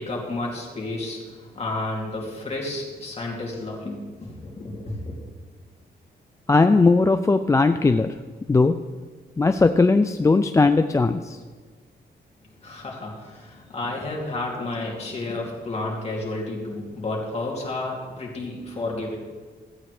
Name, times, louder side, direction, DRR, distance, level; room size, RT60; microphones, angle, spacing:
voice 1, 0.0-5.2 12.5-19.2, left 2 dB, 35° left, -2 dB, 2.6 m, -31 dB
voice 2, 6.5-8.1 8.5-8.8 9.4-11.4, left 3 dB, 15° left, 8 dB, 0.3 m, -18 dB
15.0 x 8.8 x 3.3 m, 1.4 s
cardioid pair, 105°, 18 cm